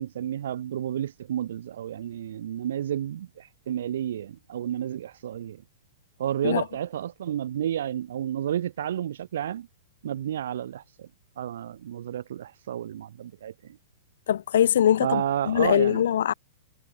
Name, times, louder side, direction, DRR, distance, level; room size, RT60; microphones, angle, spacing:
voice 1, 0.0-5.6 6.2-9.7 10.0-11.1 11.4-13.8 15.0-16.1, right 10 dB, 65° right, 2.3 m, -31 dB
voice 2, 14.3-16.3, left 10 dB, 70° left, 2.8 m, -22 dB
supercardioid pair, 175°, 0 cm